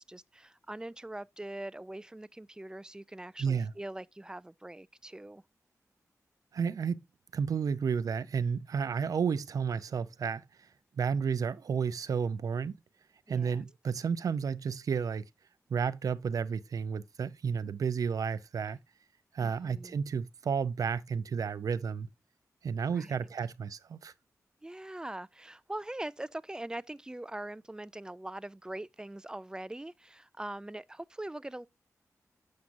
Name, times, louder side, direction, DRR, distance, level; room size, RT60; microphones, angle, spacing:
voice 1, 0.0-5.4 13.3-13.6 19.4-20.0 22.9-23.2 24.6-31.7, right 1 dB, 15° right, 0.3 m, -42 dB
voice 2, 3.4-3.7 6.5-7.0 7.3-10.4 11.0-12.8 13.3-15.3 15.7-18.8 19.3-22.1 22.6-24.1, right 6 dB, 75° right, 0.5 m, -32 dB
7.4 x 5.9 x 2.5 m
wide cardioid pair, 80°, 6 cm